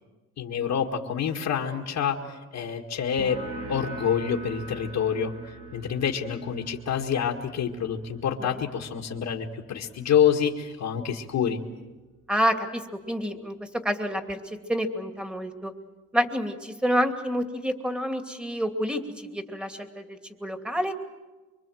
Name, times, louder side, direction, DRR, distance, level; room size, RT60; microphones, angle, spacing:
voice 1, 0.4-3.4 3.7-11.6, left 8 dB, 70° left, 1 dB, 1.9 m, -27 dB
sound 1, 3.2-10.4, right 2 dB, 80° right, 3.6 m, -42 dB
voice 2, 12.3-15.7 16.1-20.9, equal, 5° right, 6 dB, 2.6 m, -28 dB
25.5 x 24.0 x 7.7 m, 1.2 s
cardioid pair, 90°, 30 cm